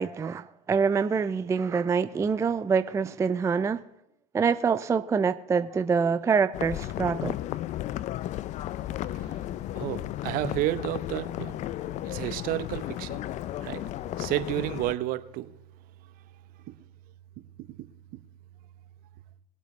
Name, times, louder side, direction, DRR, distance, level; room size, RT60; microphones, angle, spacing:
voice 1, 0.0-3.8 4.3-7.4, right 5 dB, 15° right, 0.4 m, -25 dB
sound 1, 6.5-14.9, left 14 dB, 40° left, 0.5 m, -34 dB
voice 2, 9.8-11.6 12.0-13.2 13.6-13.8 14.2-15.5 16.7-16.8 17.6-17.9, right 15 dB, 55° right, 0.8 m, -31 dB
20.5 x 8.2 x 3.2 m
hypercardioid pair, 90°, 18 cm